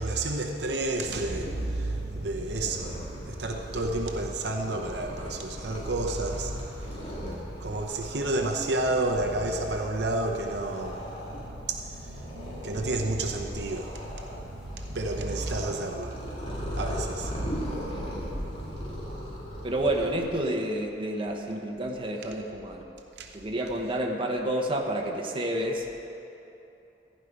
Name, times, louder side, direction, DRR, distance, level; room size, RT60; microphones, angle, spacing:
voice 1, 0.0-6.5 7.1-7.2 7.6-11.0 11.3-17.4 23.2-23.3, right 2 dB, 65° right, 2 dB, 0.8 m, -31 dB
Purr, 1.0-20.3, equal, 35° left, 2.2 m, -38 dB
voice 2, 17.9-19.1 19.6-22.9 23.3-25.9, right 1 dB, 30° right, 1 dB, 1.1 m, -30 dB
14.5 x 5.6 x 9.4 m, 2.9 s
head